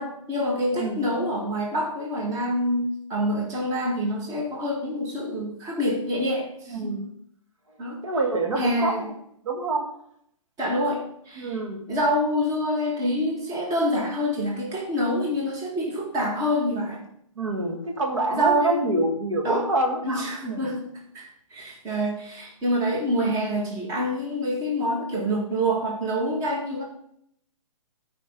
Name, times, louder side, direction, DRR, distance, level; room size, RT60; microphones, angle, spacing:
voice 1, 0.0-7.0 7.8-8.0 8.6-9.1 10.6-11.6 11.9-17.0 18.3-19.0 19.4-19.7 20.0-20.9 21.1-21.3 21.5-26.8, equal, 20° right, 0 dB, 1.8 m, -26 dB
voice 2, 0.7-1.1 6.7-7.1 8.0-8.9 9.4-9.9 11.4-11.8 17.4-20.7, right 2 dB, 65° right, 2 dB, 2.0 m, -26 dB
13.5 x 5.2 x 3.8 m, 0.70 s
figure-of-eight pair, 130°, 17 cm